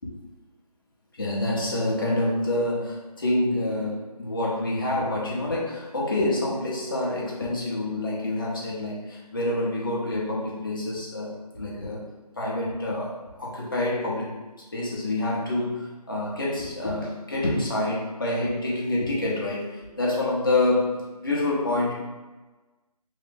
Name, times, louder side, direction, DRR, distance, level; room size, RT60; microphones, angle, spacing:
voice 1, 1.2-12.1 12.4-14.4 14.7-21.9, left 2 dB, 35° left, -5 dB, 0.7 m, -27 dB
3.1 x 2.7 x 3.6 m, 1.2 s
figure-of-eight pair, 170°, 21 cm